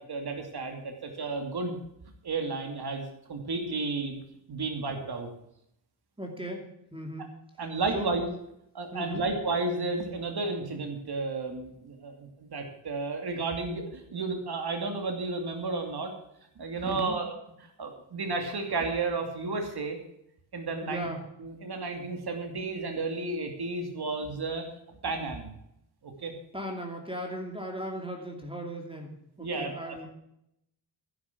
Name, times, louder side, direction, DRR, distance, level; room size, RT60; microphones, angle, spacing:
voice 1, 0.0-1.8 2.2-4.2 4.5-5.3 7.6-8.3 8.7-16.1 16.6-17.3 17.8-20.0 20.5-21.1 21.4-24.7 25.0-25.5 26.0-26.3 29.4-30.0, right 3 dB, 55° right, 4 dB, 2.8 m, -32 dB
voice 2, 6.2-7.3 7.9-8.1 8.9-9.2 16.8-17.2 20.8-21.2 26.5-30.1, equal, 10° right, 2 dB, 2.6 m, -37 dB
12.0 x 11.5 x 6.0 m, 0.77 s
wide cardioid pair, 135°, 46 cm